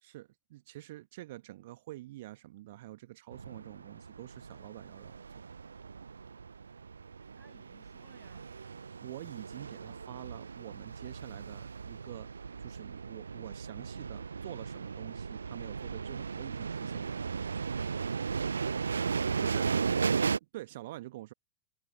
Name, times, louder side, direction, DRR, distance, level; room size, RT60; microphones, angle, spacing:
voice 1, 0.0-5.4 9.0-12.3 12.6-17.4 19.4-19.7 20.3-21.3, right 16 dB, 55° right, 1.1 m, -47 dB
sound 1, 3.3-20.4, right 5 dB, 75° right, 0.6 m, -36 dB
voice 2, 7.4-9.0, right 2 dB, 5° right, 6.8 m, -66 dB
figure-of-eight pair, 90°, 0 cm